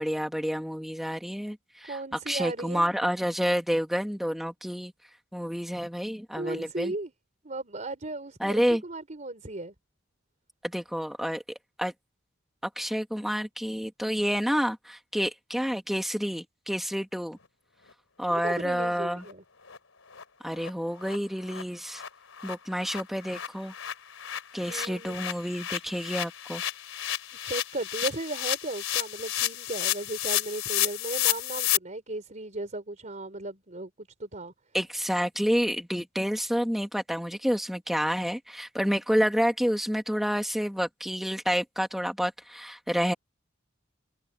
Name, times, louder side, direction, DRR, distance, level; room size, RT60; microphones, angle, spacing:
voice 1, 0.0-2.0 2.3-4.9 5.3-6.9 8.4-8.8 10.6-11.4 11.8-11.9 12.8-17.4 18.2-19.2 20.4-22.0 22.4-23.7 24.5-26.6 34.7-43.1, equal, ahead, 1.6 m, -29 dB
voice 2, 1.9-2.9 6.3-7.1 7.4-9.7 18.3-19.4 24.5-25.2 27.4-34.5, right 2 dB, 40° right, 4.0 m, -36 dB
sound 1, 18.8-18.9 19.2-19.3 19.7-19.8 20.1-20.2 20.6-20.7 21.0-21.2 21.5-21.6 21.9-31.8, left 13 dB, 90° left, 3.4 m, -31 dB
head